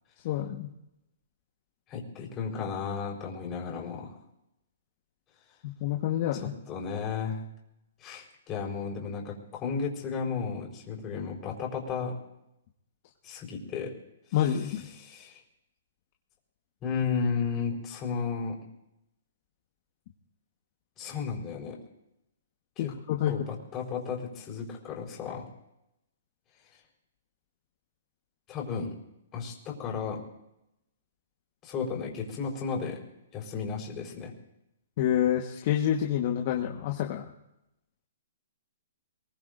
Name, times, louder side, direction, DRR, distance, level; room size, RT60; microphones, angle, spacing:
voice 1, 0.2-0.7 5.6-6.5 14.3-14.8 22.8-23.3 35.0-37.2, left 11 dB, 45° left, 1 dB, 1.4 m, -28 dB
voice 2, 1.9-4.2 6.3-7.4 8.0-12.2 13.2-13.9 14.4-15.4 16.8-18.6 21.0-21.8 22.8-22.9 23.3-25.5 28.5-28.9 29.3-30.2 31.6-33.0 33.3-34.3, left 5 dB, 25° left, -1 dB, 4.5 m, -34 dB
23.0 x 21.5 x 2.7 m, 0.87 s
hypercardioid pair, 140°, 0 cm